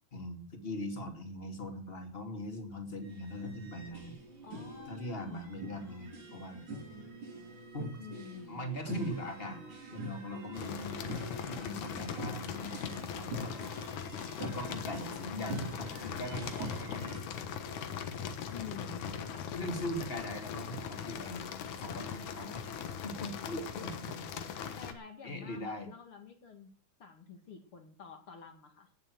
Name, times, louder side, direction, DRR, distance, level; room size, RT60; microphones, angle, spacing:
voice 1, 0.1-4.2 4.9-6.6 7.7-7.9 8.5-13.5 14.4-17.2 18.8-19.1 19.6-21.5 21.8-24.2 25.2-25.9, left 1 dB, 20° left, 4 dB, 2.5 m, -41 dB
sound 1, 3.0-17.2, right 1 dB, 90° right, 7.0 m, -45 dB
voice 2, 4.4-5.7 8.0-8.9 18.5-19.5 24.6-26.7 27.0-28.9, left 6 dB, 50° left, 5 dB, 2.8 m, -50 dB
sound 2, 10.5-24.9, left 7 dB, 80° left, 2.8 m, -40 dB
17.5 x 7.3 x 7.9 m, 0.43 s
omnidirectional pair, 3.4 m